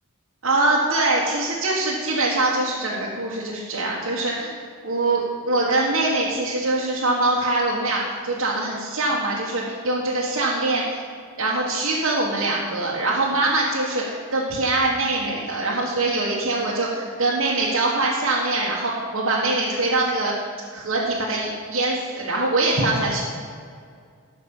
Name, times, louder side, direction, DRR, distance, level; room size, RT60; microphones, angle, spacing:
voice 1, 0.4-4.6 4.8-11.0 11.4-20.3 20.7-23.2, right 2 dB, 65° right, -5 dB, 1.4 m, -23 dB
12.5 x 5.2 x 7.1 m, 2.2 s
head